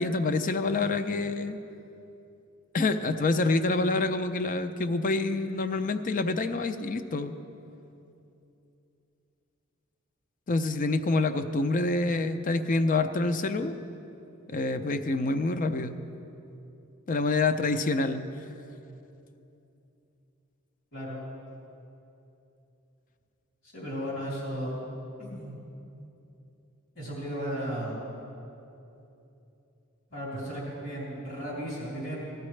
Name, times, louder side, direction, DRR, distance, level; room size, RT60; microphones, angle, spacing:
voice 1, 0.0-1.6 2.7-7.3 10.5-13.8 14.5-15.9 17.1-18.2, left 3 dB, 40° left, 10 dB, 0.5 m, -27 dB
voice 2, 23.7-24.8 25.2-25.6 27.0-28.0 30.1-32.2, equal, 65° left, -6 dB, 3.4 m, -35 dB
18.0 x 13.0 x 3.3 m, 2.8 s
head